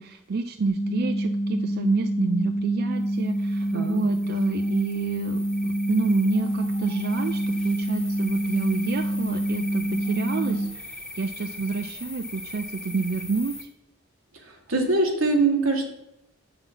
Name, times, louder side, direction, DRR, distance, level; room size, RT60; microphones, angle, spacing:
voice 1, 0.0-13.7, right 4 dB, 50° right, 8 dB, 0.4 m, -29 dB
sound 1, 0.7-10.7, right 1 dB, 55° left, 1.2 m, -27 dB
sound 2, 3.0-13.6, left 2 dB, 5° left, 0.9 m, -40 dB
voice 2, 3.7-4.0 14.7-15.9, right 3 dB, 85° right, 1 dB, 1.7 m, -22 dB
7.1 x 5.8 x 5.3 m, 0.87 s
head